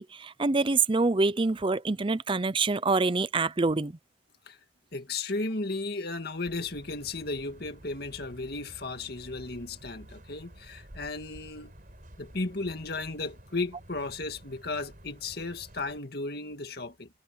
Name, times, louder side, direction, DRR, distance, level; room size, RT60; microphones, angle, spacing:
voice 1, 0.0-3.9, right 3 dB, 30° right, 0.6 m, -26 dB
voice 2, 4.9-11.7 12.2-17.1, left 3 dB, 60° left, 2.1 m, -35 dB
sound 1, 6.4-16.0, right 1 dB, 50° right, 5.0 m, -51 dB
head